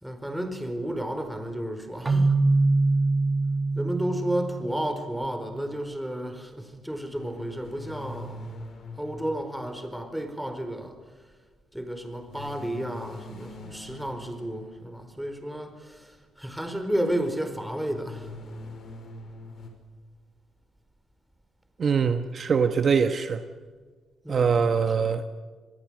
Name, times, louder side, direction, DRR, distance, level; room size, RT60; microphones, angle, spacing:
voice 1, 0.0-2.4 3.7-8.5 9.0-11.0 11.7-18.3 24.2-25.2, right 1 dB, 5° right, 4.5 m, -32 dB
Keyboard (musical), 2.1-5.0, right 3 dB, 25° right, 1.7 m, -23 dB
sound 1, 7.1-10.6 12.3-15.4 17.5-19.7, left 1 dB, 55° left, 5.9 m, -43 dB
voice 2, 21.8-23.4 24.3-25.3, right 6 dB, 50° right, 1.3 m, -23 dB
27.0 x 20.5 x 6.4 m
cardioid pair, 90°, 0 cm